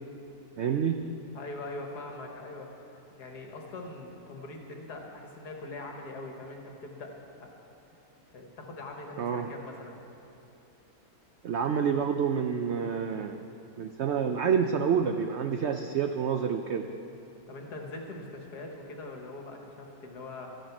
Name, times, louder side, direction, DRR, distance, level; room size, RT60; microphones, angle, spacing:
voice 1, 0.6-1.0 9.2-9.5 11.4-13.4 13.8-16.9, right 7 dB, 85° right, 6 dB, 0.6 m, -28 dB
voice 2, 1.3-2.7 3.1-7.1 7.4-7.5 8.3-10.0 17.5-20.5, left 2 dB, 70° left, 2 dB, 2.0 m, -42 dB
13.0 x 11.5 x 6.0 m, 2.9 s
omnidirectional pair, 1.8 m